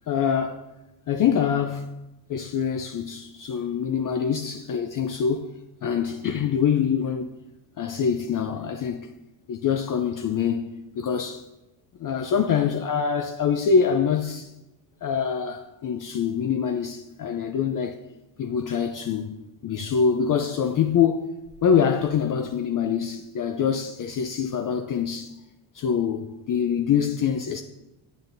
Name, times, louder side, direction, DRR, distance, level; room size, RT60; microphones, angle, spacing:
voice 1, 0.1-0.6 1.1-1.9 2.3-5.5 5.8-7.3 7.8-9.1 9.5-11.4 12.0-14.5 15.0-18.0 18.4-21.3 21.6-25.3 25.7-27.6, left 7 dB, 45° left, 0.5 m, -25 dB
10.5 x 7.2 x 2.6 m
cardioid pair, 95°, 49 cm